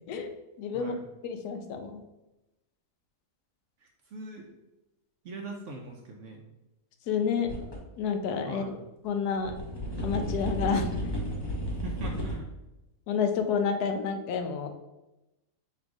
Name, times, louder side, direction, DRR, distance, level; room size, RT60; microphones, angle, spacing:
voice 1, 0.6-0.9 1.2-2.0 7.1-7.5 8.0-8.6 9.0-9.5 10.0-11.1 13.1-14.7, left 6 dB, 80° left, 6 dB, 1.1 m, -29 dB
voice 2, 4.1-4.5 5.2-6.4 8.4-8.7 11.8-12.5, right 2 dB, 65° right, 2 dB, 0.8 m, -40 dB
sound 1, 7.5-7.8 8.2-8.3 9.4-12.3, equal, 20° left, 0.7 m, -33 dB
4.4 x 2.5 x 4.7 m, 0.96 s
omnidirectional pair, 1.7 m